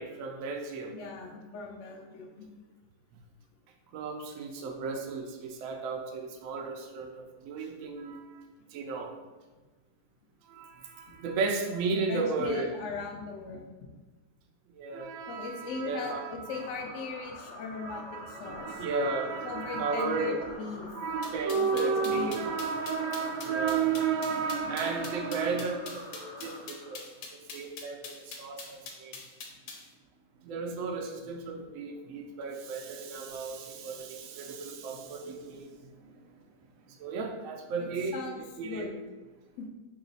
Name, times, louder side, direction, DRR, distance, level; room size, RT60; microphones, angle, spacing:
voice 1, 0.0-1.0 3.9-8.4 8.7-9.1 10.5-12.7 14.7-16.3 17.8-20.6 20.9-29.2 30.4-36.2 36.9-38.1 38.6-38.9, right 4 dB, 70° right, 3 dB, 0.8 m, -33 dB
voice 2, 0.9-2.5 11.9-13.9 15.3-18.8 19.4-20.9 21.5-22.4 37.8-38.9 39.6-39.7, left 4 dB, 65° left, 2 dB, 0.8 m, -39 dB
sound 1, 16.5-27.3, left 1 dB, 45° left, 1.1 m, -45 dB
sound 2, 21.2-29.9, left 5 dB, 85° left, 1.3 m, -43 dB
3.0 x 2.9 x 4.0 m, 1.2 s
omnidirectional pair, 1.7 m